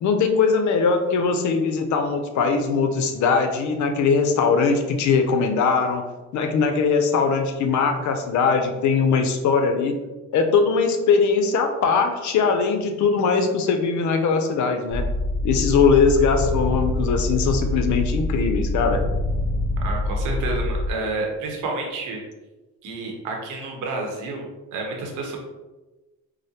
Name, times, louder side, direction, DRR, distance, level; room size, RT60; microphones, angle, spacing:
voice 1, 0.0-6.1 6.3-9.9 10.3-15.1 15.4-19.0, left 5 dB, 70° left, 6 dB, 0.6 m, -21 dB
sound 1, 14.9-20.9, left 1 dB, 45° left, 0.9 m, -25 dB
voice 2, 19.8-22.2 22.8-25.4, right 3 dB, 85° right, 1 dB, 0.9 m, -30 dB
4.8 x 2.1 x 2.8 m, 1.1 s
cardioid pair, 90°, 30 cm